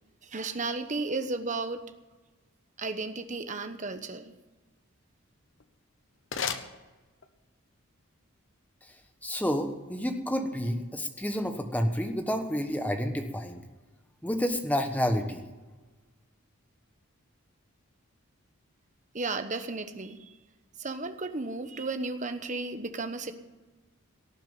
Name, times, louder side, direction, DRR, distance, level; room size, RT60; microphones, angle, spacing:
voice 1, 0.2-1.8 2.8-4.3 19.1-20.3 20.8-23.3, right 3 dB, 35° right, 8 dB, 1.1 m, -34 dB
sound 1, 5.4-7.5, left 6 dB, 60° left, 1.1 m, -38 dB
voice 2, 9.2-13.6 14.2-15.4, equal, 5° left, 6 dB, 1.3 m, -29 dB
18.0 x 7.4 x 9.1 m, 1.2 s
head